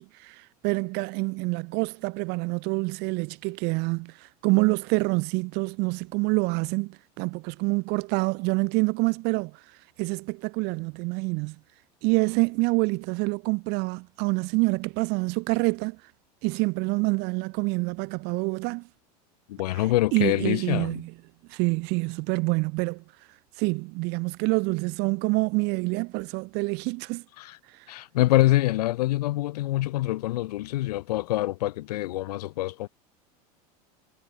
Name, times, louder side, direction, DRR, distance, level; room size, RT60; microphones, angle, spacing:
voice 1, 0.0-11.6 12.0-16.1 16.4-18.9 19.7-21.1 21.5-23.0 23.5-27.2 27.7-27.9, right 28 dB, 55° right, 2.4 m, -27 dB
voice 2, 19.5-21.0 27.4-27.6 27.9-32.9, left 16 dB, 75° left, 6.3 m, -25 dB
supercardioid pair, 110°, 20 cm